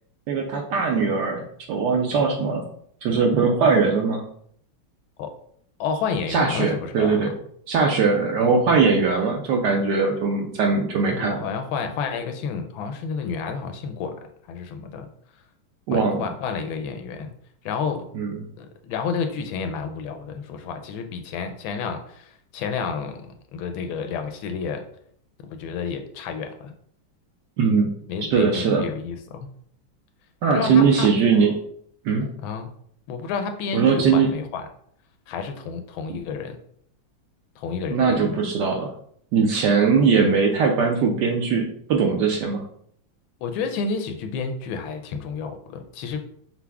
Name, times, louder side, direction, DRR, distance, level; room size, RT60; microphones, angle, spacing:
voice 1, 0.3-1.4 1.7-2.6 3.0-4.2 6.3-7.3 7.7-11.4 15.9-16.2 18.1-18.3 27.6-27.9 28.3-28.9 30.4-31.5 32.0-32.3 33.7-34.3 37.9-38.9 39.3-42.6, right 5 dB, 75° right, 2 dB, 1.0 m, -20 dB
voice 2, 5.8-7.3 11.1-14.2 14.5-15.1 15.9-17.3 17.6-18.1 18.6-24.8 25.4-26.7 28.1-29.5 30.5-31.1 32.4-32.7 33.1-34.7 35.3-36.6 37.6-38.4 43.4-46.2, left 5 dB, 80° left, 6 dB, 1.3 m, -30 dB
5.8 x 2.0 x 3.4 m, 0.66 s
omnidirectional pair, 2.2 m